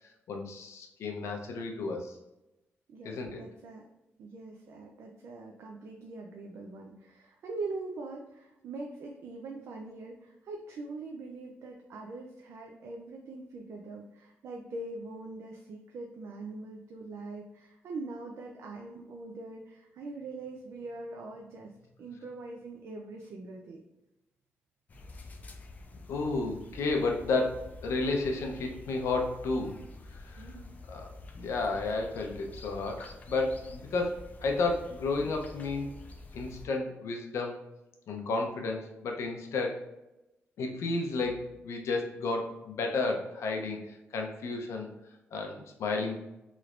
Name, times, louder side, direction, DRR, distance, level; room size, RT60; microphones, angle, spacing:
voice 1, 0.0-2.2 3.0-3.4 26.1-29.8 30.1-30.5 30.9-31.1 31.3-35.9 36.3-37.6 38.1-39.8 40.6-44.9 45.3-46.2, left 3 dB, 80° left, 2 dB, 0.6 m, -32 dB
voice 2, 2.9-3.9 4.2-23.8 30.4-30.7, right 3 dB, 75° right, 1 dB, 0.4 m, -42 dB
sound 1, 24.9-36.7, left 2 dB, 35° left, 0.4 m, -48 dB
3.1 x 3.1 x 2.4 m, 0.94 s
wide cardioid pair, 145°, 5 cm